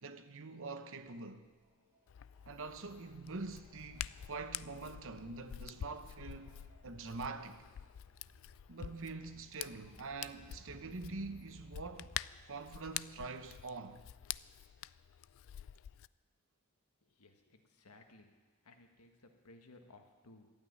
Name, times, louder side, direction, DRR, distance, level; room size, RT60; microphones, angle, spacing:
voice 1, 0.0-1.5 2.5-6.6 6.8-7.6 8.7-12.1 12.5-14.0, right 3 dB, 65° right, 1.0 m, -45 dB
sound 1, 1.1-12.5, equal, 10° right, 4.7 m, -62 dB
Hands, 2.1-16.1, left 12 dB, 65° left, 0.3 m, -47 dB
voice 2, 17.0-18.3 18.6-20.5, left 2 dB, 85° left, 1.6 m, -60 dB
13.0 x 8.8 x 9.6 m
head